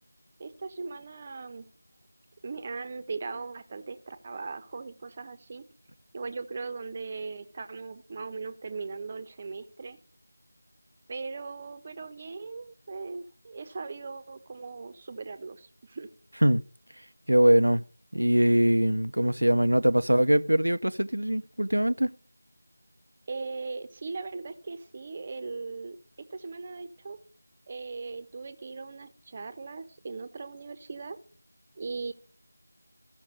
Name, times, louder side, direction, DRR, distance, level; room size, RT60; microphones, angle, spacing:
voice 1, 0.4-1.7 2.4-5.6 6.1-10.0 11.1-16.1 23.3-27.2 27.7-31.2 31.8-32.1, right 4 dB, 25° right, 1.1 m, -39 dB
voice 2, 17.3-17.8 18.1-22.1, right 1 dB, 85° right, 0.9 m, -22 dB
16.0 x 6.4 x 6.4 m
figure-of-eight pair, 170°, 0 cm